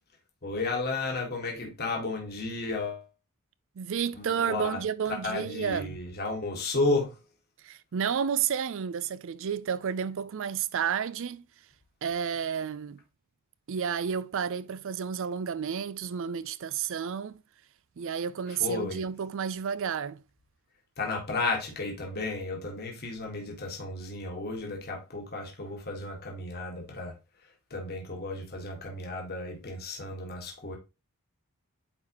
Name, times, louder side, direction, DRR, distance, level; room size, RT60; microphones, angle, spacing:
voice 1, 0.4-3.1 4.1-4.8 5.1-7.2 18.5-19.1 21.0-30.8, left 3 dB, 45° left, 1.6 m, -33 dB
voice 2, 3.8-6.0 7.6-11.4 12.0-13.0 13.7-17.4 18.0-20.2, right 7 dB, 60° right, 0.4 m, -31 dB
8.9 x 4.0 x 2.9 m
head